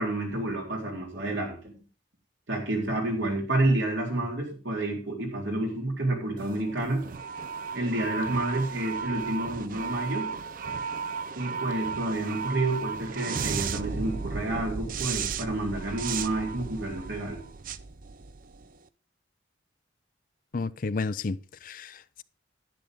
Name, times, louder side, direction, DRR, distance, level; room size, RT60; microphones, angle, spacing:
voice 1, 0.0-1.7 2.5-7.0 7.7-10.3 11.4-17.4, right 2 dB, 85° right, 4.0 m, -29 dB
sound 1, 6.4-18.8, right 5 dB, 50° right, 0.5 m, -35 dB
voice 2, 20.5-22.2, left 3 dB, 50° left, 0.5 m, -32 dB
10.5 x 10.0 x 3.8 m
head